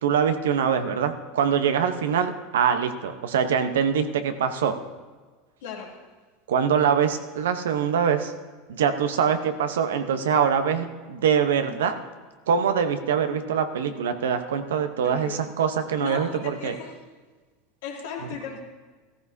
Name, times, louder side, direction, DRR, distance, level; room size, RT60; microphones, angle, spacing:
voice 1, 0.0-4.8 6.5-8.3 8.7-11.9 12.5-16.7, right 7 dB, 85° right, 8 dB, 1.0 m, -24 dB
voice 2, 5.6-6.0 15.0-15.4 16.0-17.0 17.8-18.6, left 6 dB, 80° left, -2 dB, 2.7 m, -36 dB
15.0 x 14.0 x 2.8 m, 1.4 s
hypercardioid pair, 95°, 0 cm